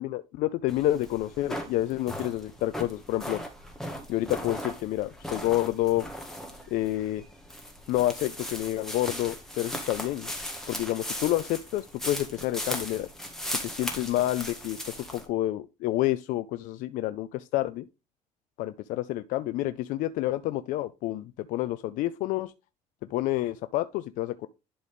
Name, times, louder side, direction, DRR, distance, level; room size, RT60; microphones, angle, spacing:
voice 1, 0.0-3.4 4.1-6.1 6.7-7.2 7.9-10.3 10.7-13.1 13.6-17.9 18.6-22.5 23.1-24.5, left 15 dB, 70° left, 0.5 m, -29 dB
sound 1, 0.7-15.2, equal, 5° left, 1.6 m, -38 dB
11.0 x 4.0 x 3.5 m
cardioid pair, 145°, 14 cm